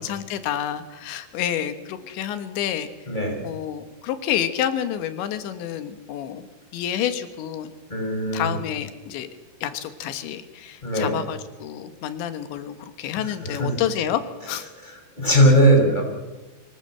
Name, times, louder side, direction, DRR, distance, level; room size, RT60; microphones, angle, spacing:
voice 1, 0.0-2.9 3.4-6.5 6.7-7.7 8.3-9.3 9.6-14.7, left 10 dB, 90° left, 10 dB, 3.6 m, -29 dB
voice 2, 3.1-3.4 7.9-8.5 10.8-11.1 13.2-13.7 14.8-16.0, equal, 10° left, 1 dB, 5.8 m, -19 dB
25.0 x 17.5 x 7.7 m, 1.1 s
omnidirectional pair, 5.0 m